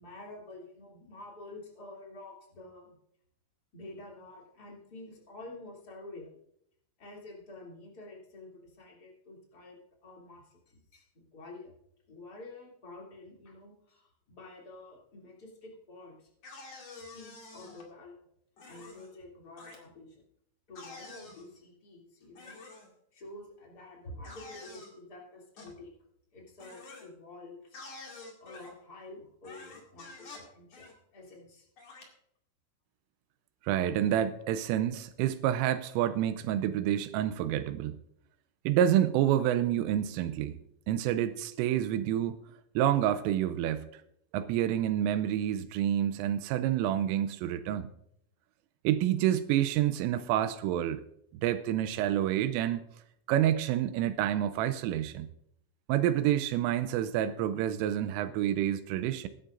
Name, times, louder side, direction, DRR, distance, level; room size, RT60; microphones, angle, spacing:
voice 1, 0.0-2.9 3.7-6.4 7.0-11.7 12.1-16.3 16.9-18.3 18.7-20.2 20.7-22.6 23.1-25.9 26.3-27.8 28.4-31.7, left 2 dB, 25° left, 2.4 m, -49 dB
sound 1, 16.4-17.8 18.6-19.1 19.6-19.8 20.8-21.5 22.4-22.9 24.2-24.9 25.6-25.7 26.6-27.1 27.7-28.7 29.4-30.5 30.7-30.9 31.8-32.1, left 3 dB, 45° left, 2.4 m, -48 dB
voice 2, 33.6-38.0 38.7-40.6 40.9-42.4 42.8-43.9 44.3-47.9 48.8-51.0 51.4-52.8 53.3-55.3 55.9-59.3, right 11 dB, 85° right, 3.2 m, -28 dB
20.0 x 11.5 x 2.6 m
omnidirectional pair, 5.8 m